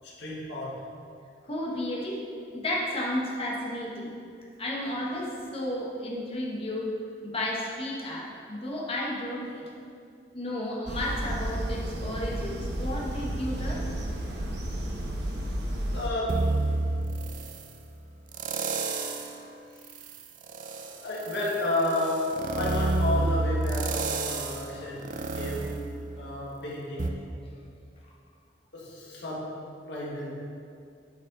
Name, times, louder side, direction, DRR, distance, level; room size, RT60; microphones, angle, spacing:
voice 1, 0.0-0.8 15.9-16.5 20.7-25.8 26.1-27.3 28.7-30.3, left 1 dB, 70° left, -5 dB, 1.9 m, -32 dB
voice 2, 1.4-2.2 2.5-4.1 4.6-6.9 7.2-9.7 10.3-13.8, left 1 dB, 30° left, -3 dB, 1.3 m, -32 dB
sound 1, 10.9-16.1, right 1 dB, 65° right, 0.9 m, -32 dB
sound 2, 16.3-17.7 18.3-19.4 19.8-26.5 27.0-27.1, right 2 dB, 45° right, 0.5 m, -30 dB
9.2 x 5.3 x 4.0 m, 2.4 s
head